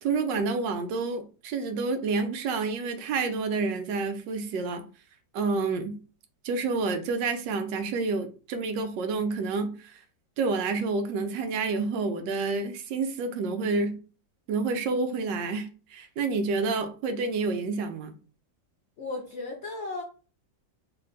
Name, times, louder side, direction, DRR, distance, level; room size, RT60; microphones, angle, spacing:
voice 1, 0.0-4.8 5.3-6.0 6.4-10.0 10.4-14.0 14.5-18.1, right 4 dB, 80° right, 1.2 m, -29 dB
voice 2, 19.0-20.0, left 3 dB, 75° left, 0.6 m, -35 dB
3.2 x 2.1 x 3.7 m
omnidirectional pair, 2.0 m